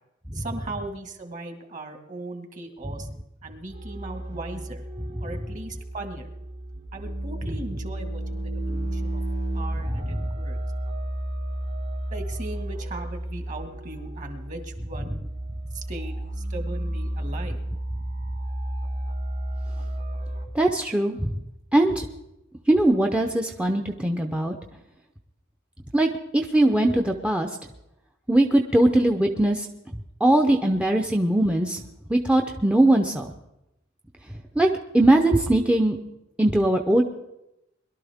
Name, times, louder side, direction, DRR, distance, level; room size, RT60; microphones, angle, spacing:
voice 1, 0.3-3.1 3.4-4.9 5.2-6.3 6.9-9.2 9.5-10.6 12.1-15.2 15.7-17.6, right 2 dB, 40° right, 5 dB, 1.7 m, -38 dB
sound 1, 3.7-20.5, right 1 dB, 70° right, 3.3 m, -32 dB
voice 2, 20.5-21.3 21.7-22.1 22.7-24.6 25.9-27.5 28.3-31.8 32.1-33.3 34.6-34.7 34.9-36.0 36.4-37.0, right 1 dB, 5° right, 5 dB, 0.6 m, -21 dB
22.0 x 12.0 x 3.5 m, 0.90 s
head